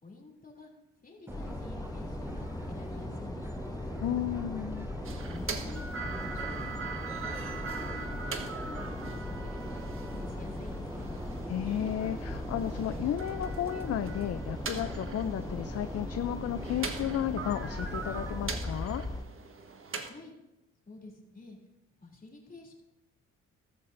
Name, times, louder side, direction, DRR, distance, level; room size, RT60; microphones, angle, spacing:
voice 1, 0.0-0.7 1.0-3.8 5.3-6.9 7.3-11.1 20.1-20.3 20.9-21.6 22.0-22.7, left 3 dB, 30° left, 0 dB, 3.1 m, -49 dB
sound 1, 1.3-19.2, left 2 dB, 10° left, 0.9 m, -39 dB
Subway metro underground, 1.3-18.6, right 2 dB, 10° right, 0.4 m, -43 dB
voice 2, 4.0-4.9 11.5-19.0, left 10 dB, 55° left, 10 dB, 0.6 m, -33 dB
sound 2, 5.0-20.1, right 5 dB, 45° right, 1.4 m, -42 dB
14.0 x 13.0 x 2.7 m, 0.96 s
cardioid pair, 90°, 30 cm